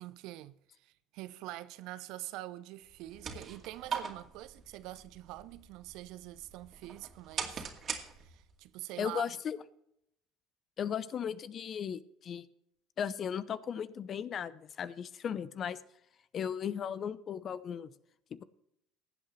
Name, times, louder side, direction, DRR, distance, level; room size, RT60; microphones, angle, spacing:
voice 1, 0.0-7.7 8.1-9.2, right 16 dB, 70° right, 0.6 m, -45 dB
sound 1, 2.9-8.6, right 6 dB, 45° right, 2.2 m, -42 dB
voice 2, 9.0-9.6 10.8-12.5 13.0-15.8 16.3-17.9, left 8 dB, 45° left, 0.7 m, -36 dB
20.0 x 8.2 x 3.2 m
hypercardioid pair, 70°, 0 cm